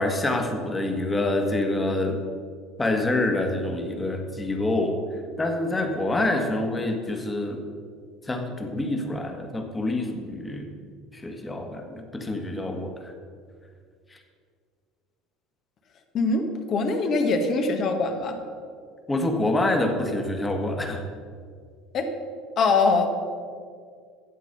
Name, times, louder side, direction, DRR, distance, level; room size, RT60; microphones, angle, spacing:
voice 1, 0.0-2.2 2.8-5.0 5.4-7.6 8.2-10.7 11.1-13.1 14.1-14.2 19.1-21.0, left 2 dB, 20° left, 3 dB, 1.6 m, -26 dB
voice 2, 16.1-18.4 21.9-22.1 22.6-23.1, left 3 dB, 50° left, 5 dB, 1.5 m, -23 dB
11.0 x 7.7 x 5.5 m, 2.1 s
supercardioid pair, 85°, 0 cm